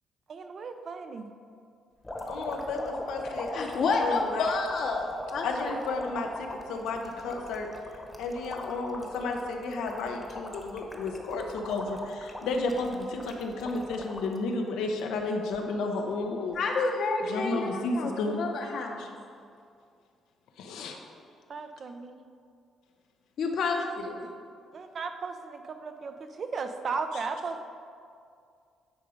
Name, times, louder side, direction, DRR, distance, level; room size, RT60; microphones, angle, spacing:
voice 1, 0.3-1.3 21.5-22.2 24.7-27.6, right 4 dB, 50° right, 7 dB, 0.6 m, -36 dB
sound 1, 2.0-14.4 14.8-15.6 16.6-16.7, left 1 dB, 15° left, 1.0 m, -41 dB
voice 2, 2.2-4.5 5.4-7.7 8.2-16.6 17.3-18.4 19.0-19.1 20.6-21.0, left 3 dB, 90° left, 2 dB, 0.9 m, -32 dB
voice 3, 3.5-5.0 5.3-5.7 16.5-19.1 23.4-24.3, left 4 dB, 65° left, 2 dB, 1.0 m, -29 dB
9.9 x 3.9 x 5.1 m, 2.3 s
cardioid pair, 90°, 0 cm